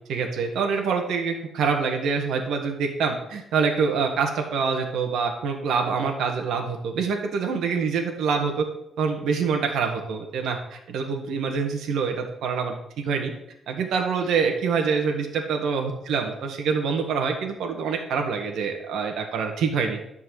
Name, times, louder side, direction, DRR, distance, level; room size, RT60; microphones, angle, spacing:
voice 1, 0.1-8.7 9.0-13.3 13.7-20.0, right 5 dB, 85° right, 3 dB, 1.8 m, -25 dB
11.5 x 4.7 x 7.7 m, 0.81 s
cardioid pair, 130°, 0 cm